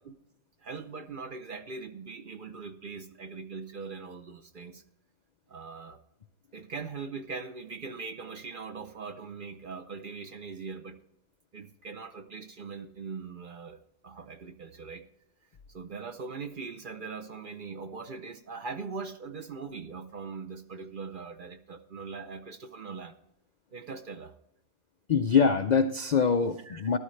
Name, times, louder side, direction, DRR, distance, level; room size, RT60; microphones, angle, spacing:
voice 1, 0.6-4.8 5.5-6.0 6.5-11.0 11.5-15.0 15.7-23.1 23.7-24.3 26.7-26.8, right 4 dB, 50° right, 6 dB, 0.7 m, -41 dB
voice 2, 25.1-27.0, left 6 dB, 75° left, 8 dB, 0.4 m, -24 dB
13.5 x 12.5 x 3.2 m, 0.84 s
omnidirectional pair, 1.4 m